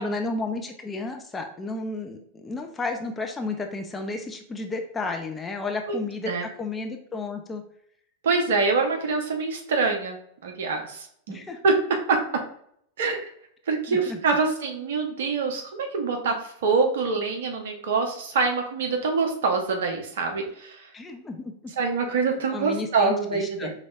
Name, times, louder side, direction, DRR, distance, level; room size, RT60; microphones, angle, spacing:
voice 1, 0.0-7.6 11.3-11.6 13.9-14.2 20.9-21.5 22.5-23.7, left 3 dB, 15° left, 4 dB, 0.6 m, -32 dB
voice 2, 8.2-11.4 11.6-12.4 13.0-13.2 13.7-20.9 21.8-23.7, right 4 dB, 60° right, 3 dB, 0.9 m, -25 dB
5.3 x 3.2 x 2.4 m, 0.67 s
figure-of-eight pair, 90°, 0 cm